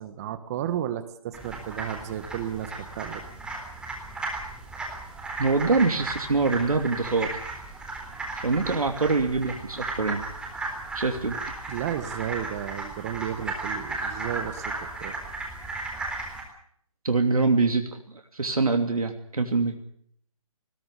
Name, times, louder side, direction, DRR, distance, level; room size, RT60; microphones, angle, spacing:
voice 1, 0.0-3.3 11.7-15.2, right 10 dB, 25° right, 12 dB, 1.4 m, -33 dB
sound 1, 1.3-16.4, right 3 dB, 5° right, 3.8 m, -35 dB
voice 2, 5.4-7.4 8.4-10.2 10.9-11.4 17.0-18.0 18.3-19.8, right 3 dB, 90° right, 5 dB, 3.0 m, -24 dB
20.0 x 18.0 x 8.4 m, 0.66 s
hypercardioid pair, 155°, 18 cm